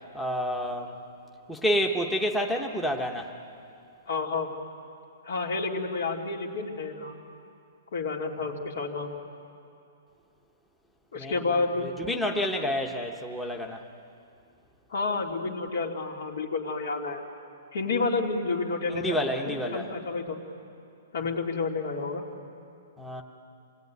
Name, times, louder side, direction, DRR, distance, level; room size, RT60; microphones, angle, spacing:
voice 1, 0.1-0.9 1.5-3.3 11.2-13.8 18.9-19.9 23.0-23.2, equal, 5° left, 2 dB, 0.9 m, -29 dB
voice 2, 4.1-4.5 5.2-7.2 7.9-9.1 11.1-11.9 14.9-17.2 17.7-19.2 19.4-20.4 21.1-22.2, left 3 dB, 70° left, -1 dB, 2.6 m, -30 dB
26.5 x 19.0 x 9.4 m, 2.5 s
hypercardioid pair, 170°, 0 cm